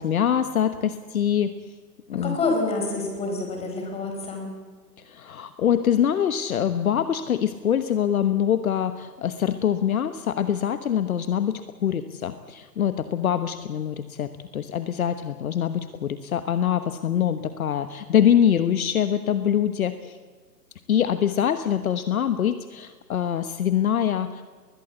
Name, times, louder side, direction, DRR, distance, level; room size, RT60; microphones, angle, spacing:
voice 1, 0.0-1.6 2.1-2.4 5.0-20.2 20.9-24.4, left 9 dB, 55° left, 11 dB, 1.3 m, -24 dB
voice 2, 2.2-4.5, left 3 dB, 10° left, 2 dB, 4.4 m, -27 dB
21.0 x 20.5 x 8.1 m, 1.5 s
hypercardioid pair, 150°, 50 cm